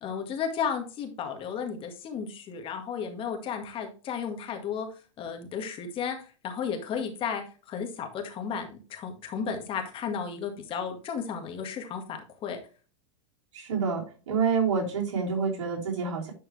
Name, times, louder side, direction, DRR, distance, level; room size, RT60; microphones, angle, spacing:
voice 1, 0.0-4.9 5.2-6.2 6.4-12.6, left 7 dB, 35° left, 4 dB, 1.8 m, -33 dB
voice 2, 13.5-16.3, right 5 dB, 70° right, -2 dB, 3.2 m, -28 dB
10.5 x 4.5 x 3.3 m, 0.35 s
hypercardioid pair, 105°, 16 cm